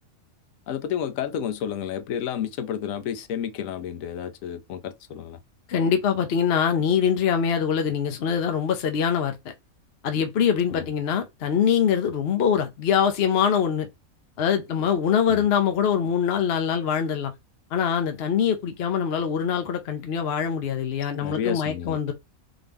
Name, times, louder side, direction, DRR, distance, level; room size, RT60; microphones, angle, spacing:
voice 1, 0.7-5.4 10.7-10.8 15.3-15.5 21.2-22.0, left 9 dB, 75° left, 1.1 m, -31 dB
voice 2, 5.7-9.5 10.0-13.9 14.4-17.3 17.7-22.1, left 7 dB, 55° left, 0.9 m, -23 dB
4.0 x 2.7 x 3.4 m
omnidirectional pair, 1.4 m